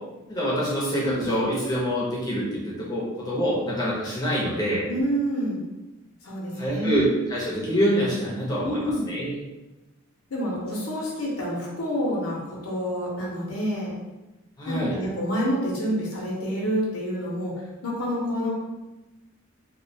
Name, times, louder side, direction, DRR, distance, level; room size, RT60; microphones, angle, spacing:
voice 1, 0.3-4.9 6.6-9.4 14.6-15.0, equal, 20° left, -6 dB, 0.5 m, -26 dB
voice 2, 4.9-5.6 6.2-7.1 8.6-9.1 10.3-13.9 14.7-17.5 17.8-18.5, equal, 80° left, -3 dB, 0.6 m, -28 dB
2.3 x 2.1 x 2.6 m, 1.0 s
head